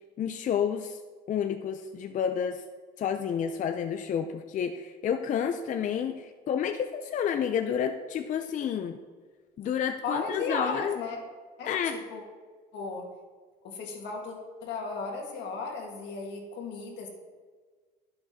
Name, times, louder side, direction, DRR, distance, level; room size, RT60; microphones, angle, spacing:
voice 1, 0.2-1.0 1.3-2.6 3.0-9.0 9.6-11.0 11.7-12.0, left 8 dB, 45° left, 7 dB, 0.4 m, -30 dB
voice 2, 10.0-11.2 11.6-12.2 12.7-13.1 13.6-17.1, left 4 dB, 80° left, 1 dB, 1.5 m, -35 dB
12.0 x 5.8 x 2.7 m, 1.5 s
cardioid pair, 110°, 18 cm